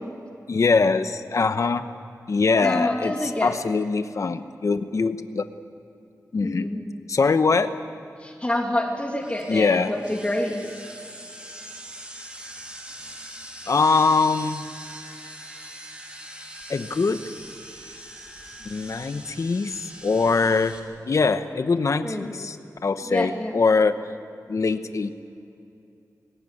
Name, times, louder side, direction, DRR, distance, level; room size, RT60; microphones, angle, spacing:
voice 1, 0.5-1.8 2.3-5.4 6.3-6.7 7.1-7.7 9.5-9.9 13.7-14.6 16.7-17.2 18.6-20.8 21.1-22.6 22.8-24.0 24.5-25.1, left 4 dB, 55° left, 10 dB, 0.9 m, -22 dB
voice 2, 2.6-3.6 6.4-6.8 8.2-10.8 22.0-22.3 23.0-23.5, left 1 dB, 20° left, 1 dB, 2.4 m, -27 dB
sound 1, 9.2-20.8, right 1 dB, 15° right, 3.0 m, -42 dB
20.5 x 17.5 x 9.6 m, 2.6 s
wide cardioid pair, 90°, 6 cm